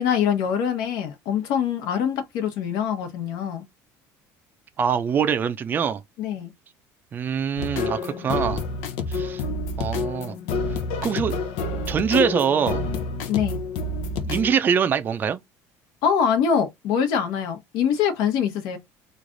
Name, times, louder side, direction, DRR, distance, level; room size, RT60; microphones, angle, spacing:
voice 1, 0.0-3.7 6.2-6.5 13.3-13.6 16.0-18.8, left 7 dB, 75° left, 1.1 m, -24 dB
voice 2, 4.8-6.0 7.1-8.6 9.1-9.4 9.8-10.3 11.0-11.3 11.9-12.8 14.2-15.4, right 7 dB, 30° right, 0.4 m, -23 dB
sound 1, 7.6-14.5, left 3 dB, 90° left, 0.7 m, -28 dB
3.2 x 2.5 x 3.8 m
cardioid pair, 140°, 7 cm